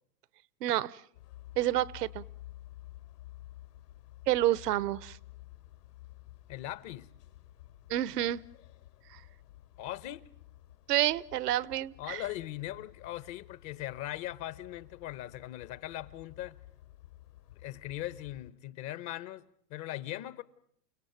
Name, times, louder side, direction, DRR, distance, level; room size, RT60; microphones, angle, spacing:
voice 1, 0.6-1.0 1.6-2.2 4.3-5.2 7.9-8.4 9.1-9.2 10.9-12.2, right 14 dB, 75° right, 1.0 m, -29 dB
sound 1, 1.1-18.5, left 15 dB, 75° left, 3.5 m, -53 dB
voice 2, 6.5-7.1 9.8-10.3 12.0-16.6 17.6-20.4, left 14 dB, 35° left, 1.0 m, -40 dB
30.0 x 17.5 x 9.3 m
hypercardioid pair, 125°, 48 cm